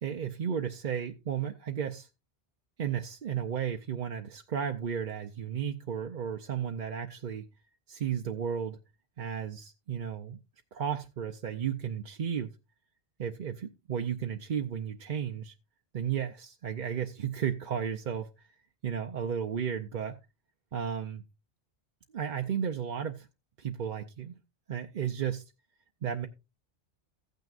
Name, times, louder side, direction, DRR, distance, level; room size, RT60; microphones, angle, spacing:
voice 1, 0.0-2.1 2.8-7.5 7.9-8.8 9.2-10.4 10.7-12.5 13.2-15.5 15.9-18.5 18.8-20.2 20.7-21.2 22.1-23.3 23.6-24.4 24.7-25.4 26.0-26.3, right 8 dB, 50° right, 0.7 m, -33 dB
15.0 x 9.2 x 2.5 m
omnidirectional pair, 1.1 m